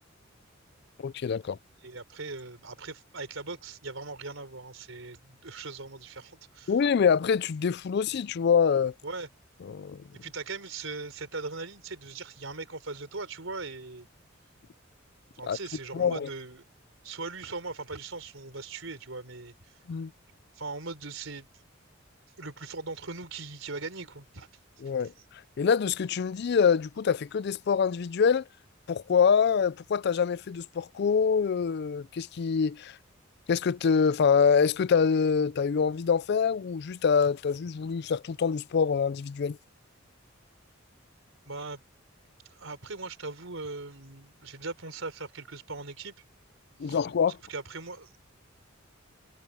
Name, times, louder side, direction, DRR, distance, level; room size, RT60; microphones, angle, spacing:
voice 1, 1.0-1.6 6.7-8.9 9.6-10.0 15.5-15.6 15.9-16.3 19.9-20.1 24.8-25.1 25.6-28.4 28.9-33.0 33.5-39.6 46.8-47.4, left 6 dB, 55° left, 0.4 m, -25 dB
voice 2, 1.8-6.7 9.0-9.3 10.1-14.1 15.3-16.6 17.0-19.7 20.6-21.5 22.4-24.5 41.4-41.8 42.5-46.1 46.8-47.0 47.5-48.1, right 3 dB, 80° right, 3.9 m, -39 dB
head